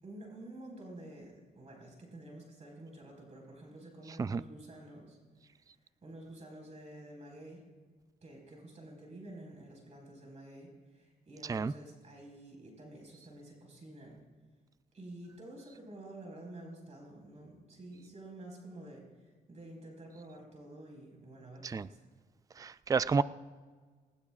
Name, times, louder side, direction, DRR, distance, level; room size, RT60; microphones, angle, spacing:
voice 1, 0.0-5.2 5.4-7.6 8.2-14.2 14.9-19.1 19.5-22.0, right 1 dB, 45° right, 0 dB, 4.7 m, -50 dB
voice 2, 11.4-11.7 21.6-21.9 22.6-23.2, right 5 dB, 20° right, 16 dB, 0.4 m, -30 dB
19.0 x 19.0 x 2.4 m, 1.5 s
cardioid pair, 80°, 16 cm